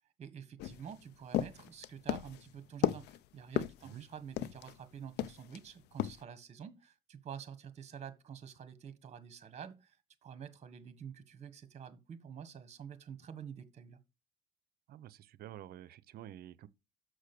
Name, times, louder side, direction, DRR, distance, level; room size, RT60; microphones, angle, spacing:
voice 1, 0.2-10.0 10.2-14.0, right 7 dB, 40° right, 1.5 m, -48 dB
sound 1, 0.6-4.8 5.2-5.6 6.0-6.2, left 12 dB, 80° left, 0.6 m, -35 dB
voice 2, 14.9-16.7, right 12 dB, 65° right, 0.7 m, -49 dB
6.4 x 6.3 x 6.8 m
cardioid pair, 110°, 17 cm